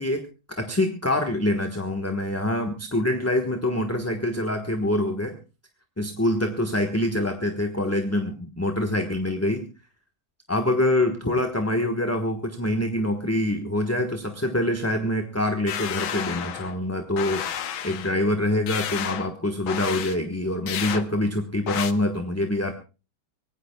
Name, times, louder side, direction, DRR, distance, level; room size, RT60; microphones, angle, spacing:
voice 1, 0.0-5.3 6.0-9.6 10.5-17.4 17.8-22.7, left 1 dB, 10° left, 4 dB, 1.1 m, -25 dB
sound 1, 15.7-16.8 17.2-18.1 18.7-19.3 19.7-20.2 20.7-21.0 21.7-21.9, left 9 dB, 85° left, 1.9 m, -31 dB
24.5 x 18.0 x 2.3 m, 0.33 s
omnidirectional pair, 2.2 m